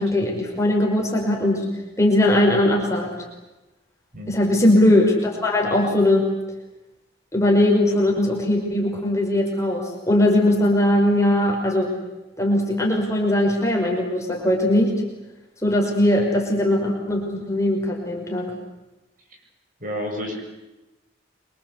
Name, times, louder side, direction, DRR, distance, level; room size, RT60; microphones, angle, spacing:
voice 1, 0.0-1.6 2.0-3.1 4.3-6.2 7.3-11.9 12.4-15.0 15.6-18.5, left 1 dB, 15° left, 0 dB, 5.4 m, -20 dB
voice 2, 19.8-20.4, equal, 45° right, 2 dB, 7.2 m, -30 dB
27.0 x 24.5 x 8.3 m, 1.0 s
head